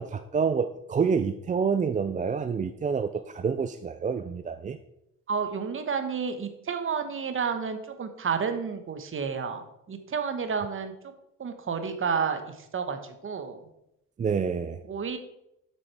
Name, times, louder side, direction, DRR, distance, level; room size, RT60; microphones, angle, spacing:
voice 1, 0.0-4.8 14.2-14.8, right 6 dB, 25° right, 10 dB, 0.4 m, -28 dB
voice 2, 5.3-9.6 9.9-10.9 11.4-12.4 12.7-13.6 14.8-15.2, right 6 dB, 45° right, 7 dB, 1.2 m, -30 dB
7.8 x 6.1 x 4.7 m, 0.84 s
cardioid pair, 90°, 30 cm